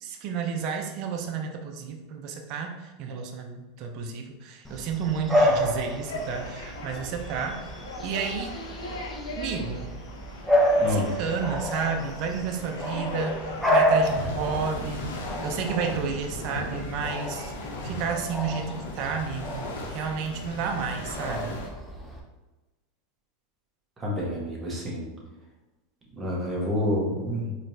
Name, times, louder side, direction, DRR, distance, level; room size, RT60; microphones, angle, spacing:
voice 1, 0.0-7.7 8.0-8.6 9.4-9.9 10.8-17.5 17.8-21.5, right 6 dB, 55° right, 3 dB, 0.6 m, -31 dB
Bark / Bird vocalization bird call bird song, 4.6-22.2, equal, ahead, 0.8 m, -29 dB
sound 1, 6.0-21.7, left 1 dB, 85° left, 0.7 m, -38 dB
voice 2, 10.8-11.1 24.0-25.1 26.2-27.5, left 1 dB, 20° right, -4 dB, 1.4 m, -28 dB
4.0 x 3.1 x 2.8 m, 1.1 s
hypercardioid pair, 110°, 0 cm